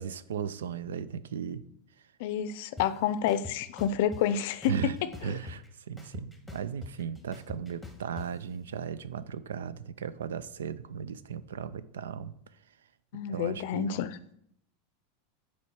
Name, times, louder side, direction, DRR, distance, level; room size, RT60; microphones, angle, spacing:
voice 1, 0.0-1.6 4.7-4.9 5.2-12.3 13.3-14.0, right 7 dB, 90° right, 15 dB, 0.4 m, -36 dB
voice 2, 2.2-4.9 5.3-5.4 13.1-14.2, left 9 dB, 65° left, 14 dB, 0.5 m, -29 dB
sound 1, 2.8-2.9 3.3-4.2 4.6-5.7 6.0-8.3, left 2 dB, ahead, 1.2 m, -43 dB
7.2 x 4.4 x 4.6 m, 0.70 s
hypercardioid pair, 110°, 0 cm